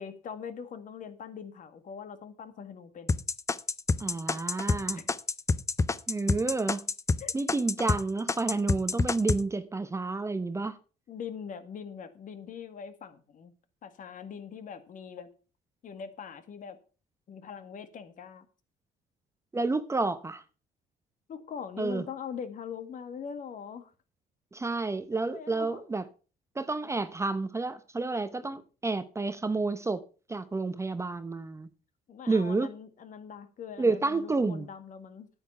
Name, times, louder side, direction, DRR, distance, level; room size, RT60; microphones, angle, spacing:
voice 1, 0.0-3.2 4.9-5.0 7.2-7.3 11.1-13.5 13.8-15.3 15.8-16.8 17.3-18.5 21.3-23.9 25.3-25.8 32.1-35.3, left 7 dB, 50° left, 1.8 m, -42 dB
sound 1, 3.1-8.0 8.3-9.4, left 4 dB, 20° left, 0.5 m, -27 dB
voice 2, 4.0-5.0 6.1-6.9 7.3-10.8 19.5-20.4 21.8-22.1 24.5-26.0 26.6-30.0 30.3-31.7 32.3-32.7 33.8-34.7, right 3 dB, 15° right, 0.8 m, -30 dB
9.3 x 9.3 x 5.6 m
cardioid pair, 110°, 17 cm